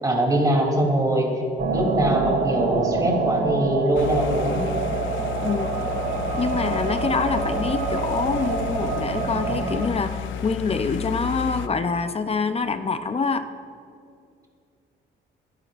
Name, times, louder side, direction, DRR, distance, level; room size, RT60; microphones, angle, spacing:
voice 1, 0.0-1.3 1.7-4.6, right 1 dB, 20° right, 0 dB, 3.2 m, -22 dB
sound 1, 1.6-9.9, right 4 dB, 75° right, 1.9 m, -26 dB
sound 2, 3.9-11.7, left 7 dB, 75° left, 0.7 m, -32 dB
voice 2, 6.4-13.5, left 4 dB, 30° left, 10 dB, 0.7 m, -25 dB
23.0 x 11.0 x 2.6 m, 2.4 s
cardioid pair, 90°, 20 cm